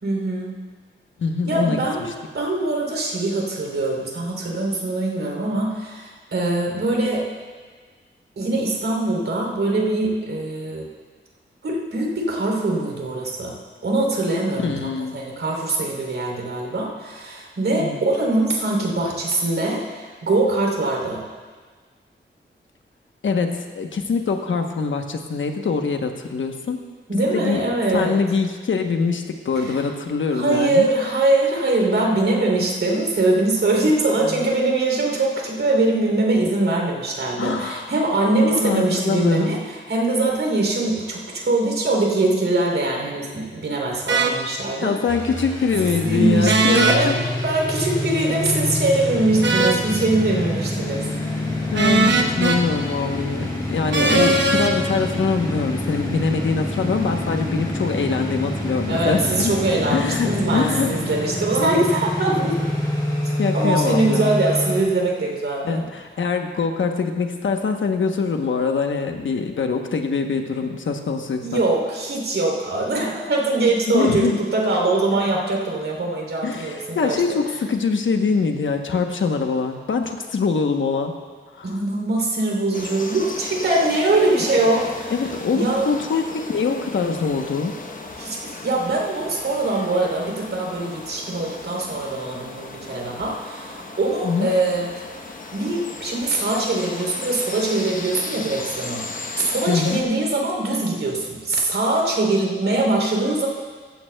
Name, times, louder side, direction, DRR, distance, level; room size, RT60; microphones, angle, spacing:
voice 1, 0.0-0.6 1.5-2.1 2.3-7.3 8.4-10.9 11.6-13.6 13.8-21.2 27.1-28.2 29.5-29.8 30.3-45.0 46.0-47.1 47.4-51.1 54.1-54.2 58.9-62.6 63.5-65.8 71.4-77.2 81.6-85.1 85.5-85.9 88.2-94.9 95.5-103.5, right 2 dB, 90° right, -1 dB, 3.1 m, -22 dB
voice 2, 1.2-1.8 14.6-15.2 17.8-18.0 23.2-26.8 27.1-27.6 27.9-30.9 34.1-34.4 37.4-37.9 38.3-39.6 44.8-47.2 51.7-59.5 59.9-60.9 63.4-64.3 65.6-71.6 73.9-74.4 76.4-81.1 81.6-81.8 85.1-87.8 94.2-94.5 99.7-100.0, left 5 dB, 75° left, 5 dB, 1.0 m, -23 dB
sound 1, 44.1-44.3 46.4-47.0 49.4-49.8 51.7-52.6 53.9-54.7, right 3 dB, 65° right, 1.1 m, -19 dB
sound 2, 45.1-64.8, left 1 dB, 20° left, 2.4 m, -27 dB
sound 3, 82.7-100.0, left 3 dB, 40° left, 1.0 m, -36 dB
15.0 x 15.0 x 2.3 m, 1.5 s
wide cardioid pair, 150°, 20 cm